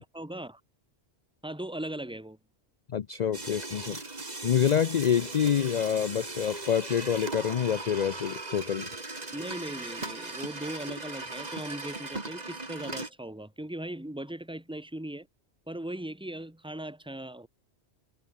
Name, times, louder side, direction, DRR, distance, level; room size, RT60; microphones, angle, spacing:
voice 1, 0.1-0.6 1.4-2.4 9.3-15.3 15.7-17.5, right 1 dB, 5° right, 2.4 m, -38 dB
voice 2, 2.9-4.0 4.4-8.9, left 8 dB, 50° left, 0.6 m, -27 dB
sound 1, 3.3-13.1, right 2 dB, 40° right, 2.3 m, -38 dB
omnidirectional pair, 1.1 m